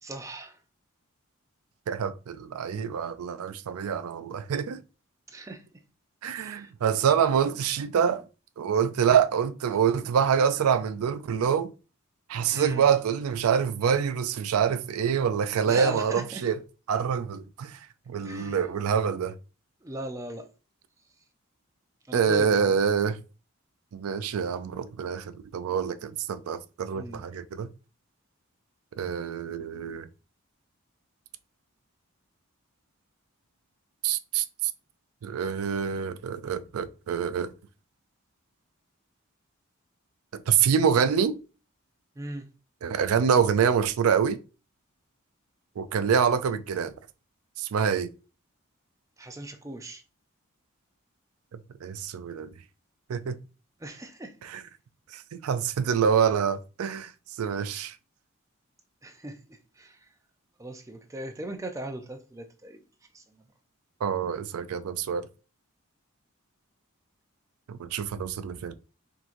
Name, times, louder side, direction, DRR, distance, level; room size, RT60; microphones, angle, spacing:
voice 1, 0.0-0.6 5.3-5.8 6.3-6.7 12.5-12.8 15.6-16.4 18.2-18.6 19.8-20.5 22.1-22.7 26.9-27.2 42.2-42.5 49.2-50.0 53.8-54.3 59.0-60.1 60.6-62.8 63.1-63.5, right 1 dB, 15° right, 0.4 m, -39 dB
voice 2, 1.9-4.8 6.2-8.2 8.6-11.7 12.3-16.6 16.9-17.8 18.1-19.3 22.1-23.2 23.9-27.7 29.0-30.1 34.0-34.4 35.2-37.5 40.3-41.4 42.8-44.4 45.8-46.9 47.6-48.1 51.8-52.5 53.1-53.4 54.4-54.6 55.1-57.1 57.4-57.9 64.0-65.2 67.7-68.7, right 7 dB, 90° right, 0.4 m, -26 dB
4.4 x 3.6 x 2.5 m
head